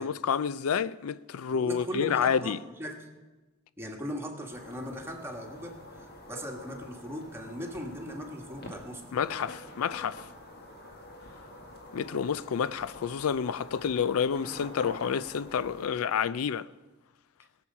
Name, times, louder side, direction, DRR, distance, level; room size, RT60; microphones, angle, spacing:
voice 1, 0.0-2.6 9.1-10.2 11.9-16.7, left 7 dB, 90° left, 0.4 m, -29 dB
voice 2, 1.5-3.1 3.8-9.0, equal, 10° right, 1.6 m, -39 dB
sound 1, 4.5-15.9, left 1 dB, 50° left, 1.8 m, -47 dB
21.5 x 7.3 x 5.5 m
head